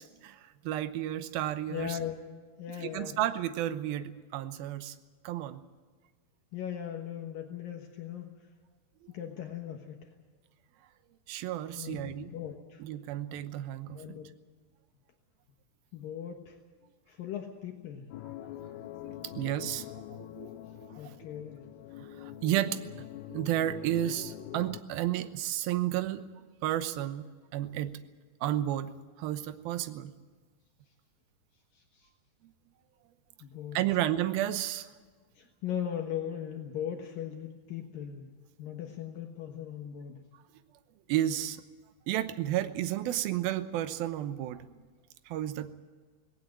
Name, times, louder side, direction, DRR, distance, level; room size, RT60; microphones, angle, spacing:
voice 1, 0.2-2.0 2.8-5.0 5.2-5.6 9.0-9.1 11.3-12.3 12.8-14.2 19.0-21.0 22.0-22.8 23.3-26.3 26.6-27.3 27.5-28.0 28.4-28.9 29.2-30.1 33.7-34.9 41.1-41.6 42.1-44.7 45.3-45.7, right 12 dB, 75° right, 11 dB, 2.7 m, -32 dB
voice 2, 1.7-2.2 2.6-3.2 6.5-8.3 9.1-10.1 11.7-12.8 13.9-14.3 15.9-16.6 17.1-18.1 21.0-21.7 31.7-32.1 33.4-33.8 35.4-38.3 38.6-40.2, left 9 dB, 70° left, 3 dB, 2.9 m, -39 dB
sound 1, 18.1-24.8, left 13 dB, 90° left, 2.9 m, -44 dB
19.0 x 18.0 x 8.9 m, 1.5 s
omnidirectional pair, 4.5 m